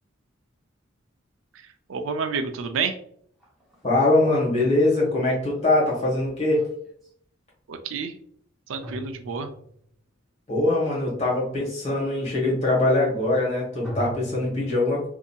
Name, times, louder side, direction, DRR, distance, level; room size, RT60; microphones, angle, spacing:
voice 1, 1.9-3.0 7.7-8.1 8.7-9.5, right 5 dB, 80° right, 7 dB, 0.4 m, -29 dB
sound 1, 3.4-7.1 8.8-10.0 13.8-14.5, right 1 dB, ahead, 0.7 m, -40 dB
voice 2, 3.8-6.6 10.5-15.1, left 2 dB, 35° left, -4 dB, 1.1 m, -22 dB
2.6 x 2.6 x 2.2 m, 0.64 s
head